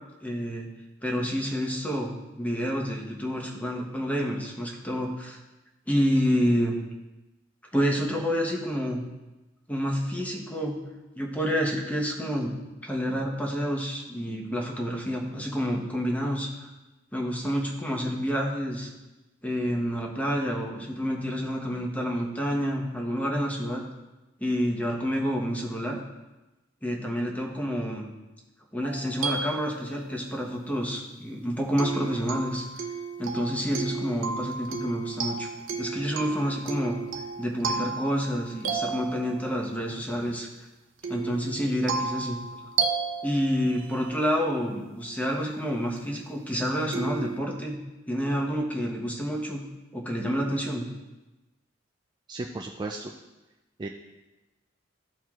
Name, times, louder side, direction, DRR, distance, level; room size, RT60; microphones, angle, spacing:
voice 1, 0.2-0.7 1.0-5.4 5.9-6.8 7.7-9.0 9.7-10.8 11.2-12.5 12.8-16.7 17.1-18.9 19.4-23.8 24.4-26.0 26.8-28.1 28.7-32.6 33.2-35.5 35.8-37.0 37.4-40.5 41.1-42.4 43.2-47.8 48.1-49.6 49.9-50.8, equal, 10° left, -1 dB, 1.0 m, -28 dB
sound 1, 28.8-30.3 31.8-39.7 41.0-44.4 46.0-46.1 46.9-47.4, right 5 dB, 80° right, 0.7 m, -33 dB
voice 2, 52.3-53.1 53.8-53.9, right 2 dB, 25° right, 3 dB, 0.3 m, -34 dB
13.0 x 4.5 x 2.4 m, 1.1 s
head